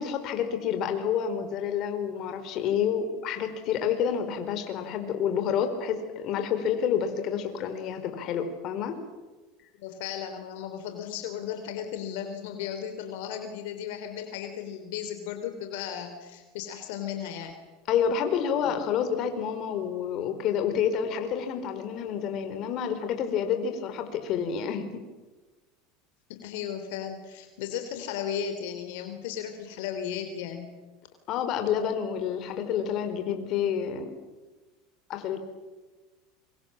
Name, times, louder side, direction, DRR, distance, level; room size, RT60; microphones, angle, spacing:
voice 1, 0.0-9.0 17.9-25.0 31.3-34.2 35.1-35.5, left 8 dB, 50° left, 8 dB, 4.4 m, -29 dB
voice 2, 9.8-17.5 18.6-18.7 26.3-30.8, left 9 dB, 75° left, 7 dB, 3.2 m, -35 dB
27.0 x 24.5 x 7.6 m, 1.2 s
supercardioid pair, 120°, 0 cm